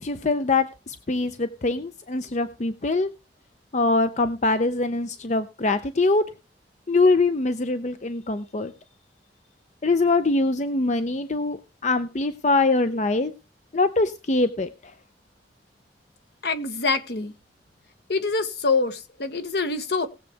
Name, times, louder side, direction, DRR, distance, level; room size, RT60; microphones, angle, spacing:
voice 1, 0.0-3.1 3.7-6.3 6.9-8.7 9.8-13.3 13.7-14.7, left 3 dB, 40° left, 0.6 m, -23 dB
voice 2, 16.4-17.3 18.1-20.1, left 4 dB, 65° left, 1.2 m, -25 dB
19.0 x 7.5 x 3.4 m
head